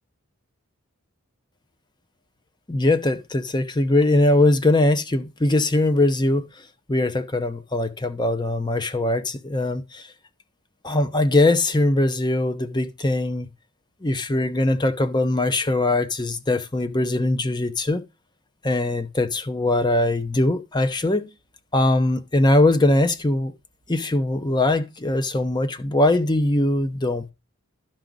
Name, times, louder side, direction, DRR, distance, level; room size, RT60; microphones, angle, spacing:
voice 1, 2.7-6.5 6.9-10.1 10.8-13.5 14.0-18.0 18.6-21.3 21.7-23.5 23.9-27.3, left 2 dB, 20° left, 0.8 m, -21 dB
12.0 x 6.0 x 4.0 m
head